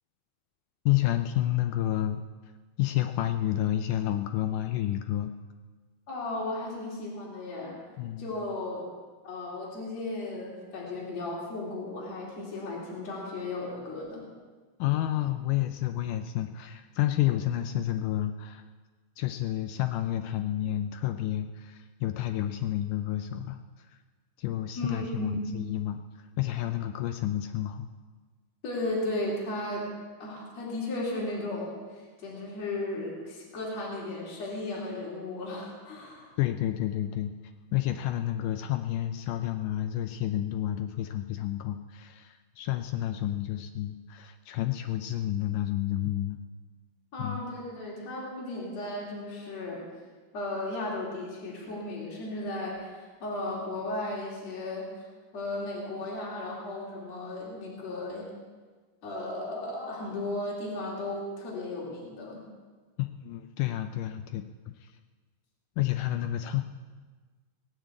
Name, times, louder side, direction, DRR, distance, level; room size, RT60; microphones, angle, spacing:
voice 1, 0.9-2.2 2.8-5.3 8.0-8.3 14.8-18.6 19.2-23.6 23.9-24.0 24.4-27.9 36.4-37.3 37.7-46.4 47.2-47.4 63.0-64.5 64.8-64.9 65.8-66.6, left 13 dB, 85° left, 8 dB, 1.8 m, -30 dB
voice 2, 6.1-7.8 8.2-8.9 9.2-14.3 24.8-25.4 28.6-29.9 30.2-36.3 47.1-49.8 50.3-54.9 55.3-58.3 59.0-62.4, left 2 dB, 45° left, -4 dB, 4.6 m, -35 dB
19.5 x 7.5 x 8.3 m, 1.4 s
omnidirectional pair, 4.4 m